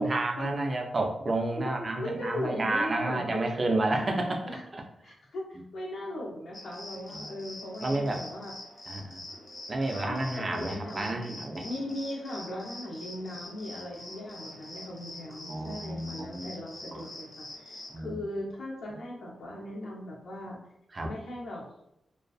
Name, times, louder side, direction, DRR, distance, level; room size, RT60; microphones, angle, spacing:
voice 1, 0.0-4.5 4.7-4.8 7.1-7.3 7.8-8.2 8.9-9.2 9.7-11.6 15.5-16.5 16.9-17.0 17.9-18.2 20.9-21.1, right 2 dB, 40° right, 2 dB, 0.4 m, -30 dB
voice 2, 1.5-3.4 4.5-4.6 5.0-8.5 9.9-20.6 21.0-21.6, left 1 dB, 75° left, -2 dB, 0.7 m, -38 dB
sound 1, 6.5-17.9, left 1 dB, 20° left, 0.7 m, -45 dB
2.4 x 2.3 x 2.3 m, 0.79 s
cardioid pair, 80°, 0 cm